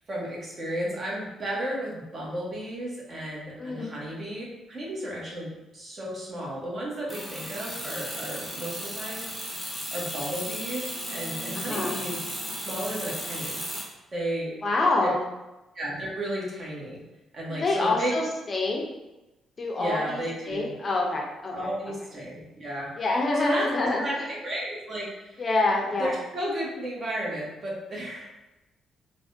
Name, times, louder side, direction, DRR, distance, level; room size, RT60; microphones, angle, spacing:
voice 1, 0.1-12.2 12.6-14.5 15.0-15.1 15.7-17.0 17.3-18.2 19.8-20.8 21.5-22.9 23.3-23.7 24.0-25.4 26.0-28.3, right 1 dB, 45° right, -5 dB, 1.1 m, -33 dB
sound 1, 7.1-13.8, equal, 10° right, 0.9 m, -35 dB
voice 2, 11.6-11.9 14.6-15.3 17.5-18.9 19.6-20.2 20.5-21.7 23.0-24.3 25.4-26.1, left 2 dB, 35° left, 0 dB, 0.5 m, -26 dB
3.3 x 2.2 x 2.6 m, 1.0 s
cardioid pair, 90°, 0 cm